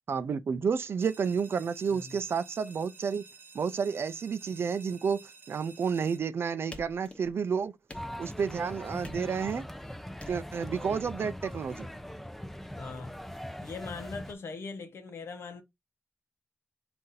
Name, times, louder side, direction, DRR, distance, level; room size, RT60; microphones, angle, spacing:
voice 1, 0.1-3.2 3.5-7.7 8.2-9.7 10.3-11.9, right 6 dB, 70° right, 0.4 m, -31 dB
sound 1, 1.0-6.2, right 4 dB, 50° right, 0.8 m, -53 dB
sound 2, 6.7-7.5 7.9-8.5 9.0-9.7 10.2-10.7, left 2 dB, 30° left, 0.9 m, -48 dB
sound 3, 7.9-14.3, equal, 5° left, 0.5 m, -41 dB
voice 2, 12.8-13.1 13.6-15.6, left 4 dB, 85° left, 0.7 m, -41 dB
4.0 x 2.5 x 3.9 m
cardioid pair, 65°, 4 cm